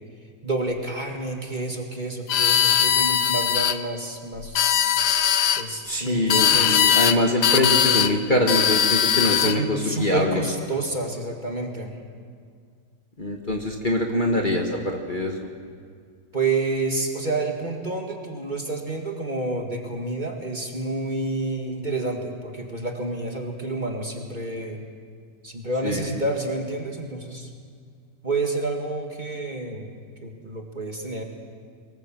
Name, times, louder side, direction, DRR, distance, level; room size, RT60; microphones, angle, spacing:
voice 1, 0.4-4.9 5.6-6.9 9.3-12.0 16.3-24.8 25.4-27.5 28.2-29.9 30.2-31.2, right 2 dB, 25° right, 2 dB, 2.1 m, -29 dB
sound 1, 2.3-3.8 4.4-5.6 6.3-7.2 7.4-8.1 8.5-9.6, left 9 dB, 75° left, 1.4 m, -20 dB
voice 2, 5.9-10.4 13.2-15.4 25.8-26.2, left 1 dB, 30° left, 1 dB, 1.6 m, -24 dB
23.5 x 19.0 x 7.6 m, 2.1 s
omnidirectional pair, 1.8 m